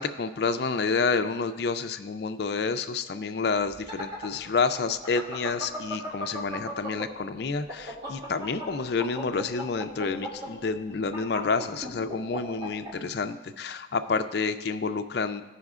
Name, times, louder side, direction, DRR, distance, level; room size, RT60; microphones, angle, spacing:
voice 1, 0.0-15.4, left 4 dB, 55° left, 10 dB, 0.4 m, -29 dB
sound 1, 3.7-7.2 7.5-12.9, equal, 30° right, 2.3 m, -36 dB
16.0 x 5.6 x 2.4 m, 1.1 s
head